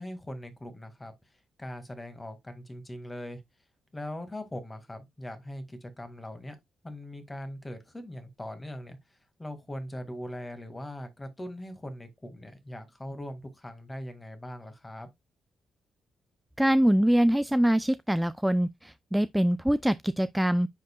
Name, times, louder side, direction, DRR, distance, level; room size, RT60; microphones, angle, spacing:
voice 1, 0.0-3.4 3.9-6.6 6.8-15.1, left 1 dB, 15° left, 1.9 m, -41 dB
voice 2, 16.6-20.7, equal, 5° right, 0.3 m, -24 dB
9.2 x 5.3 x 2.2 m
cardioid pair, 80°, 0 cm